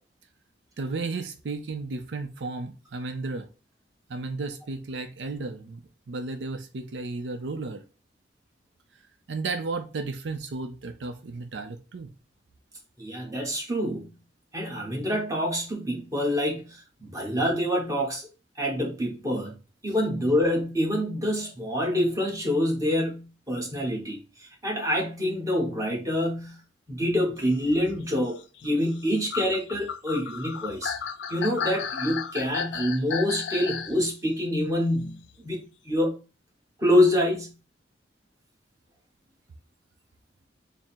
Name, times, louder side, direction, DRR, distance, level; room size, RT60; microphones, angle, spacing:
voice 1, 0.8-3.5 4.1-7.8 9.3-12.1, right 3 dB, 80° right, 0.5 m, -34 dB
voice 2, 13.0-14.1 14.5-18.3 18.6-19.5 19.8-26.6 26.9-31.0 31.3-36.2 36.8-37.5, left 1 dB, 20° right, 1.1 m, -26 dB
sound 1, 27.6-34.0 35.2-35.3, left 7 dB, 80° left, 0.4 m, -34 dB
3.6 x 2.0 x 4.3 m
head